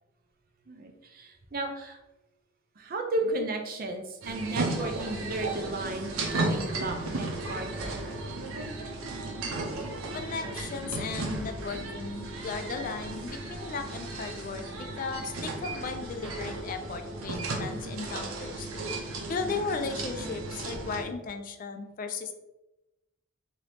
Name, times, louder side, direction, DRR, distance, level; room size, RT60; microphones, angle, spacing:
voice 1, 0.7-2.0 2.8-8.0 9.4-9.9, right 2 dB, 45° right, 4 dB, 0.5 m, -34 dB
sound 1, 4.2-21.0, right 2 dB, 90° right, 0.6 m, -35 dB
voice 2, 10.1-18.7 19.3-22.3, left 4 dB, 40° left, 6 dB, 0.3 m, -36 dB
2.8 x 2.6 x 3.3 m, 0.95 s
head